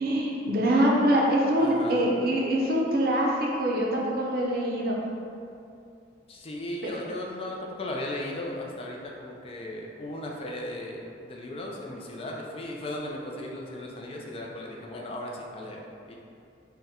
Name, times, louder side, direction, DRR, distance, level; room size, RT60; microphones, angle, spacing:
voice 1, 0.0-5.0 6.8-7.0, right 1 dB, 55° right, -3 dB, 0.5 m, -24 dB
voice 2, 1.6-2.1 6.3-16.2, left 1 dB, 30° left, -1 dB, 0.4 m, -36 dB
3.6 x 2.1 x 4.1 m, 2.5 s
head